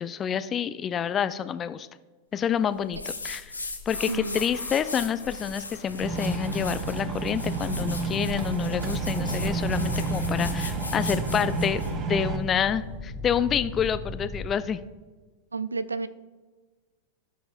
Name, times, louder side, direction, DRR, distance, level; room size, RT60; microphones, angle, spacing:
voice 1, 0.0-1.9 2.3-3.5 3.9-11.8 12.1-14.8, left 8 dB, 25° left, 13 dB, 0.4 m, -28 dB
sound 1, 2.9-12.0, left 3 dB, 80° left, 1.0 m, -38 dB
sound 2, 3.9-7.0 7.7-14.5, left 1 dB, 10° left, 1.8 m, -38 dB
voice 2, 4.1-4.4 15.5-16.1, right 4 dB, 80° right, 16 dB, 0.3 m, -31 dB
sound 3, 6.0-12.4, right 4 dB, 30° right, 0.9 m, -30 dB
17.5 x 6.0 x 2.4 m, 1.3 s
figure-of-eight pair, 90°, 0 cm